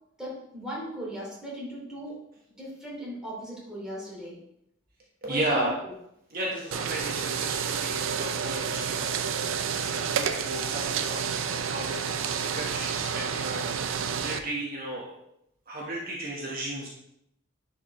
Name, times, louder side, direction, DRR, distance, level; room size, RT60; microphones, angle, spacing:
voice 1, 0.2-2.2 2.6-4.4 5.3-5.9, equal, 5° right, -6 dB, 2.7 m, -38 dB
voice 2, 5.2-5.7 6.3-15.1 15.7-16.9, right 1 dB, 45° right, -3 dB, 1.3 m, -34 dB
sound 1, 6.7-14.4, right 7 dB, 75° right, 0.5 m, -30 dB
10.0 x 4.9 x 3.1 m, 0.78 s
head